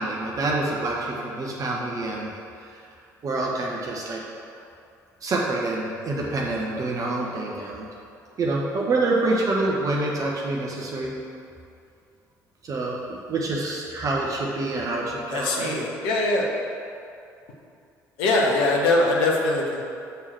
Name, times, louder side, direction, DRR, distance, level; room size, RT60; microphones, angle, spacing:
voice 1, 0.0-2.3 3.2-4.2 5.2-7.9 8.4-11.1 12.6-15.8, right 2 dB, 40° right, -3 dB, 1.1 m, -26 dB
voice 2, 15.3-16.5 18.2-19.8, left 2 dB, 60° left, -1 dB, 1.0 m, -22 dB
6.8 x 3.7 x 6.2 m, 2.5 s
figure-of-eight pair, 50°, 9 cm